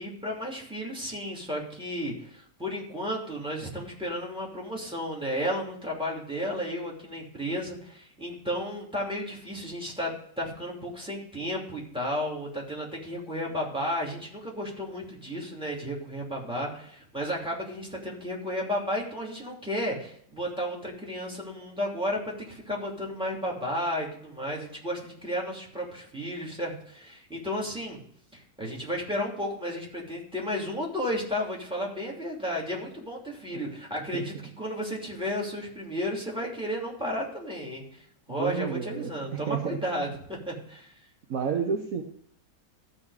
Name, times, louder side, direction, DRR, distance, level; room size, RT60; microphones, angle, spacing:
voice 1, 0.0-10.1 10.4-28.0 28.3-38.0 38.3-40.9, equal, 5° right, -2 dB, 2.8 m, -33 dB
voice 2, 38.4-40.0 41.3-42.0, right 7 dB, 55° right, 3 dB, 1.3 m, -31 dB
14.0 x 4.9 x 4.9 m, 0.63 s
omnidirectional pair, 1.9 m